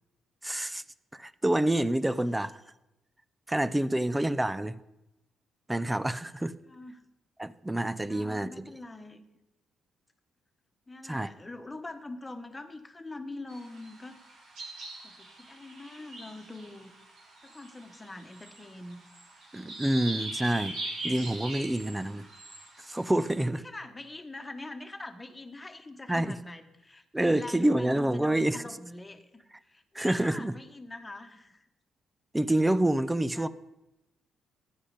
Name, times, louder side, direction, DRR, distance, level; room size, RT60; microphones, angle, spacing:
voice 1, 0.4-0.8 1.1-2.6 3.5-4.8 5.7-6.5 7.4-8.7 11.0-11.3 19.5-20.8 21.0-22.2 22.8-23.6 26.1-26.3 27.1-28.6 29.9-30.5 32.3-33.5, right 1 dB, 10° right, 16 dB, 0.6 m, -27 dB
voice 2, 3.7-4.1 6.6-7.0 8.1-9.2 10.9-14.2 15.0-16.9 17.4-19.0 22.0-22.2 23.6-31.7 33.3-33.5, left 2 dB, 20° left, 7 dB, 1.5 m, -44 dB
sound 1, 13.5-23.3, right 2 dB, 75° right, 4.8 m, -42 dB
15.0 x 10.0 x 5.1 m, 0.94 s
cardioid pair, 90°, 0 cm